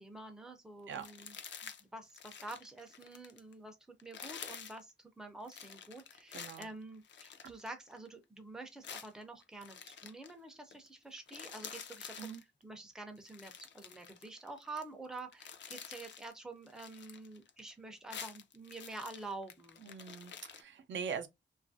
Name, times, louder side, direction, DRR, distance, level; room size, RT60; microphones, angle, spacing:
voice 1, 0.0-1.4 1.6-12.3 12.6-19.8, right 2 dB, 5° right, 0.4 m, -48 dB
sound 1, 0.9-1.8 2.1-3.5 4.0-4.8 5.5-8.1 8.8-10.3 10.7-10.9 11.1-12.4 13.2-14.8 15.2-16.3 16.7-17.7 18.0-20.6, left 7 dB, 70° left, 0.5 m, -49 dB
voice 2, 6.3-6.7 7.4-7.5 12.2-12.4 19.8-21.3, right 6 dB, 75° right, 0.5 m, -42 dB
2.9 x 2.4 x 2.5 m
wide cardioid pair, 170°, 19 cm